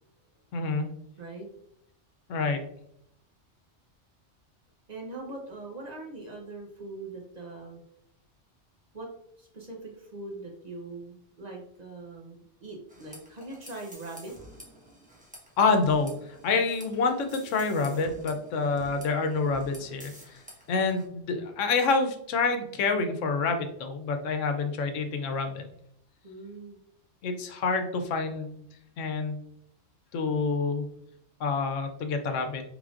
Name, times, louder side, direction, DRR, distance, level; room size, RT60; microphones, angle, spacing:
voice 1, 0.5-1.0 2.3-2.6 15.6-16.1 16.4-20.1 20.7-25.7 27.2-28.6 29.0-29.5 30.1-30.9 31.4-32.6, left 4 dB, 90° left, 6 dB, 1.0 m, -27 dB
voice 2, 4.9-7.8 8.9-9.1 9.4-14.3 26.2-26.8, right 2 dB, 40° right, 0 dB, 0.7 m, -41 dB
sound 1, 12.9-21.1, equal, 10° right, 0.8 m, -50 dB
4.9 x 3.4 x 2.4 m, 0.74 s
omnidirectional pair, 1.2 m